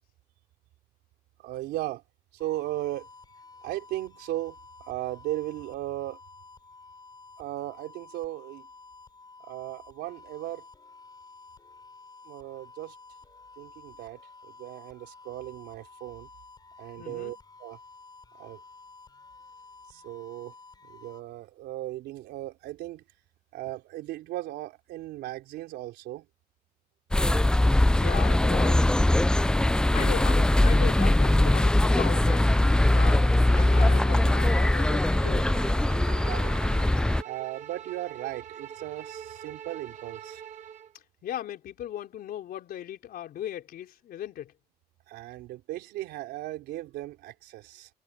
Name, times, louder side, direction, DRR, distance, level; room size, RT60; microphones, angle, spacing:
voice 1, 1.4-2.0 2.3-3.1 3.6-4.6 4.9-6.2 7.4-8.7 9.5-10.6 12.3-13.0 13.6-16.3 16.8-17.8 18.4-18.6 19.9-20.5 20.9-23.0 23.5-26.3 36.1-36.8 37.2-40.4 45.1-47.9, right 15 dB, 85° right, 3.7 m, -37 dB
sound 1, 2.4-21.2, left 4 dB, 25° left, 7.8 m, -51 dB
voice 2, 17.0-17.3 27.9-29.0 29.9-32.5 32.9-35.5 41.2-44.5, left 11 dB, 65° left, 4.3 m, -37 dB
sound 2, 27.1-37.2, left 1 dB, 5° left, 0.4 m, -21 dB
Bowed string instrument, 31.8-40.9, right 9 dB, 45° right, 2.3 m, -43 dB
cardioid pair, 110°, 17 cm